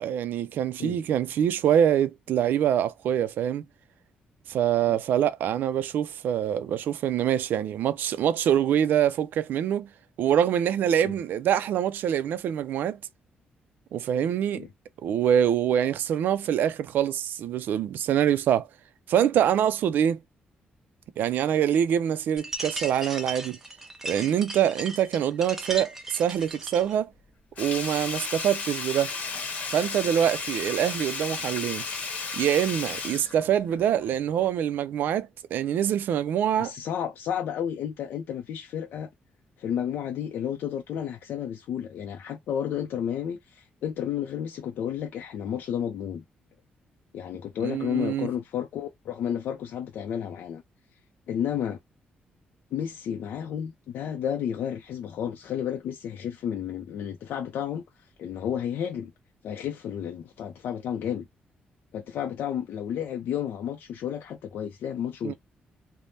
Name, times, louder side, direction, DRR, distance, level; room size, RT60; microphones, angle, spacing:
voice 1, 0.0-3.6 4.5-9.9 10.2-13.0 13.9-14.7 15.0-18.7 19.1-20.2 21.2-23.6 24.0-27.1 27.6-29.1 29.7-31.8 32.3-36.7 47.6-48.3 65.2-65.3, right 9 dB, 70° right, 0.3 m, -25 dB
sound 1, 22.4-26.9, right 2 dB, 10° right, 0.5 m, -37 dB
Sink (filling or washing), 27.6-34.1 34.4-34.5, left 4 dB, 45° left, 0.9 m, -34 dB
voice 2, 36.6-39.1 39.6-46.2 47.1-50.6 51.3-51.8 52.7-59.1 59.4-61.3 61.9-65.3, left 9 dB, 75° left, 0.4 m, -32 dB
3.3 x 2.0 x 2.6 m
cardioid pair, 165°, 3 cm